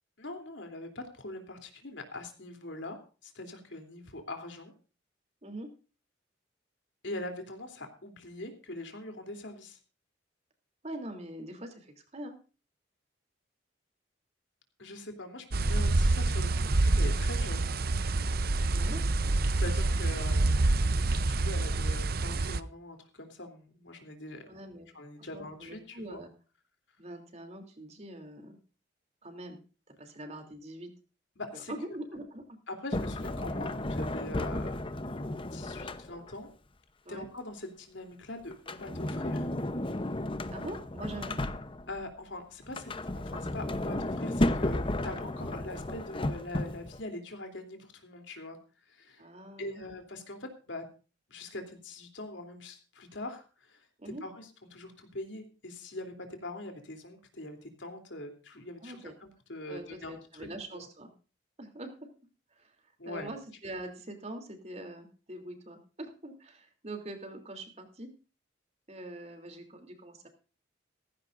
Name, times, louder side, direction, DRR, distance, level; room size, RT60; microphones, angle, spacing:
voice 1, 0.2-4.7 7.0-9.8 14.8-17.7 19.6-20.7 21.1-24.4 24.9-26.2 31.3-31.7 32.7-35.0 35.5-36.5 37.1-39.5 41.9-48.6 48.9-49.2 49.6-50.8 51.3-53.9 54.2-60.5 60.7-60.8 63.0-63.3, left 2 dB, 75° left, 5 dB, 3.3 m, -43 dB
voice 2, 10.8-12.4 18.6-19.0 24.4-24.9 25.2-26.3 27.0-28.6 29.2-29.6 30.0-30.9 31.5-32.6 37.0-37.3 40.5-41.4 49.2-50.0 54.0-54.2 58.8-59.2 59.7-61.1 61.6-61.9 62.5-68.1 68.9-70.3, right 1 dB, 35° right, 5 dB, 3.2 m, -43 dB
sound 1, 15.5-22.6, right 2 dB, 55° right, 0.7 m, -27 dB
Sliding door, 32.9-36.4 38.5-42.0 42.6-47.0, left 1 dB, 25° left, 0.8 m, -33 dB
16.5 x 15.5 x 2.6 m, 0.34 s
head